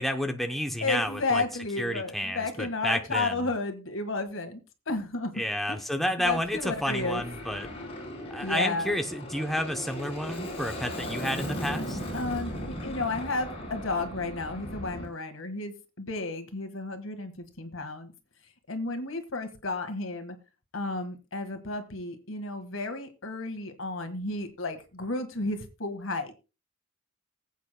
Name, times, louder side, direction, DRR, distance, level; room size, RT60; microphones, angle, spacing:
voice 1, 0.0-1.4 1.8-3.3 5.4-7.7 8.3-12.0, equal, ahead, 5 dB, 0.7 m, -30 dB
voice 2, 0.8-4.6 4.9-5.4 5.7-5.8 6.2-7.2 8.4-8.9 12.1-18.1 18.7-20.3 20.7-26.4, left 3 dB, 65° left, 8 dB, 1.7 m, -32 dB
Aircraft, 6.2-15.1, equal, 30° left, 4.2 m, -37 dB
20.5 x 8.4 x 2.2 m, 0.30 s
head